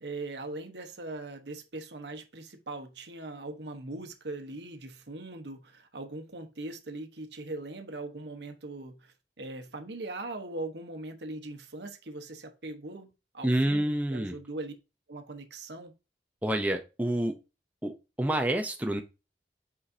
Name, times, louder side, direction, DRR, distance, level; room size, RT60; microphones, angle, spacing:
voice 1, 0.0-13.1 13.3-14.7 15.1-15.9, right 2 dB, 80° right, 1.1 m, -40 dB
voice 2, 13.4-14.3 16.4-17.3 17.8-17.9 18.2-19.0, right 1 dB, 10° right, 0.6 m, -28 dB
8.4 x 5.0 x 2.7 m
head